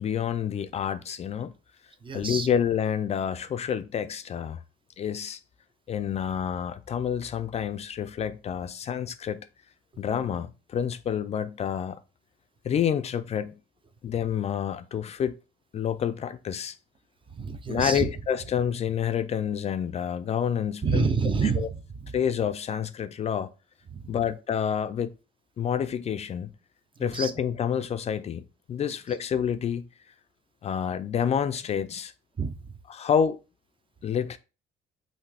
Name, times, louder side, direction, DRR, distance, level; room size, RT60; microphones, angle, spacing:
voice 1, 0.0-1.5 2.1-4.6 5.0-5.4 5.9-9.5 10.0-12.0 12.6-13.6 14.0-15.3 15.7-16.8 17.7-21.0 22.1-23.5 24.1-25.1 25.6-26.5 27.0-28.4 28.7-29.9 30.6-32.1 33.0-33.4 34.0-34.4, left 8 dB, 40° left, 0.4 m, -28 dB
voice 2, 2.0-2.5 9.9-10.0 17.3-18.1 20.8-22.2 23.9-24.2 27.0-27.3 28.9-29.0 32.4-32.8, right 5 dB, 30° right, 0.6 m, -29 dB
5.6 x 2.8 x 3.3 m
cardioid pair, 110°, 17 cm